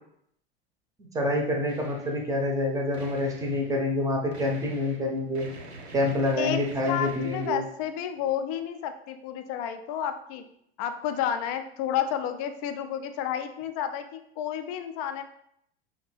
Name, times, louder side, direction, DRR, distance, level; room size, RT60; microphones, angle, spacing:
voice 1, 1.0-5.5 5.9-7.6, left 1 dB, 10° right, 1 dB, 0.7 m, -27 dB
sound 1, 1.7-2.3 2.9-3.8 4.3-7.5, right 2 dB, 80° right, 0.6 m, -45 dB
voice 2, 6.9-10.4 10.8-15.2, left 9 dB, 35° left, 8 dB, 0.4 m, -31 dB
5.1 x 2.8 x 3.2 m, 0.72 s
figure-of-eight pair, 85°, 32 cm